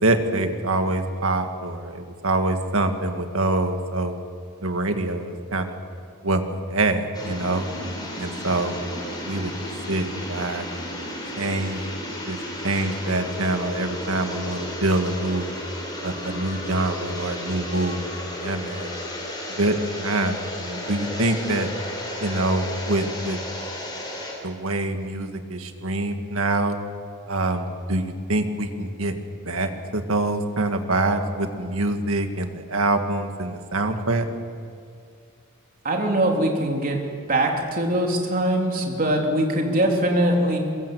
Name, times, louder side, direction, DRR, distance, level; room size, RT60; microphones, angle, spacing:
voice 1, 0.0-4.1 4.6-5.8 6.2-7.7 8.2-8.8 9.3-11.0 11.4-11.8 12.3-12.4 12.6-15.5 16.0-18.9 19.5-21.7 22.2-23.4 24.4-26.8 27.3-29.1 29.4-34.2, right 2 dB, 75° right, 6 dB, 2.0 m, -25 dB
sound 1, 7.1-24.3, left 1 dB, 20° left, 5.7 m, -33 dB
voice 2, 35.8-37.0 37.3-40.6, right 1 dB, 45° right, 1 dB, 3.5 m, -22 dB
22.5 x 22.0 x 7.9 m, 2.2 s
head